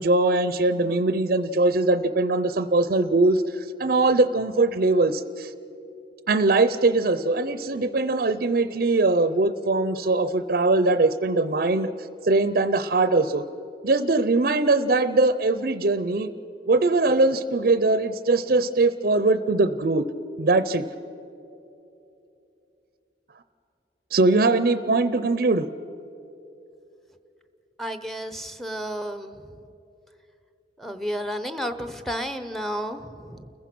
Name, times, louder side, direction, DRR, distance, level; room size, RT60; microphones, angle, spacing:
voice 1, 0.0-5.5 6.3-11.9 12.2-13.4 13.8-16.3 16.7-20.1 20.4-20.9 24.1-25.7, right 2 dB, 55° right, 12 dB, 0.6 m, -21 dB
voice 2, 27.8-29.5 30.8-33.5, equal, ahead, 9 dB, 0.8 m, -32 dB
29.5 x 15.0 x 6.1 m, 2.8 s
head